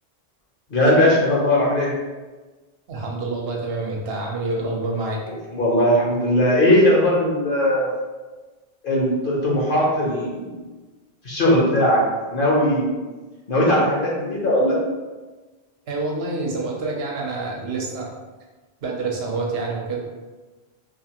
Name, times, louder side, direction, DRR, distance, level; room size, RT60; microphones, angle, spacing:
voice 1, 0.7-1.9 5.3-7.9 8.8-10.6 11.2-12.0 12.3-12.9 13.5-14.8, left 1 dB, 60° left, -4 dB, 0.9 m, -19 dB
voice 2, 2.9-5.2 15.9-18.2 18.8-20.0, right 3 dB, 75° right, -1 dB, 0.8 m, -27 dB
2.7 x 2.4 x 2.8 m, 1.3 s
omnidirectional pair, 1.0 m